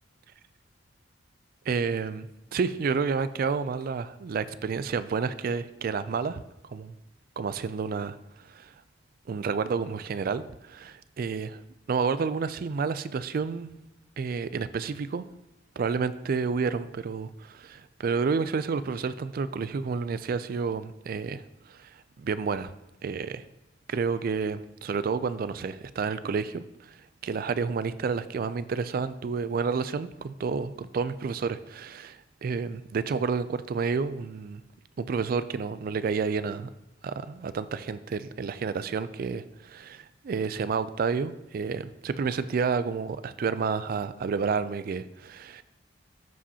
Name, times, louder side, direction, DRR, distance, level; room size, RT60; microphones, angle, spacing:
voice 1, 1.7-6.4 6.7-6.9 7.4-8.7 9.3-11.6 11.9-13.7 14.2-15.2 15.8-22.7 23.0-23.4 23.9-27.0 27.2-34.6 35.0-36.7 37.0-45.6, right 5 dB, 45° right, 14 dB, 0.3 m, -30 dB
13.5 x 5.0 x 2.8 m, 0.90 s
head